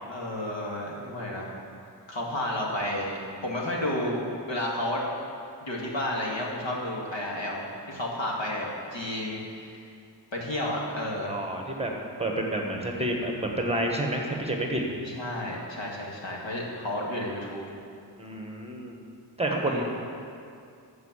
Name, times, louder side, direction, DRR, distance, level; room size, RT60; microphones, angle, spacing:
voice 1, 0.1-1.5 2.1-5.0 5.6-9.8 10.3-11.4 15.0-17.7 19.6-19.8, left 1 dB, 90° left, -2 dB, 2.0 m, -32 dB
voice 2, 11.3-11.9 12.2-14.8 18.2-19.0 19.4-19.8, right 1 dB, 15° right, 0 dB, 1.3 m, -29 dB
13.0 x 4.8 x 7.4 m, 2.4 s
wide cardioid pair, 110°, 43 cm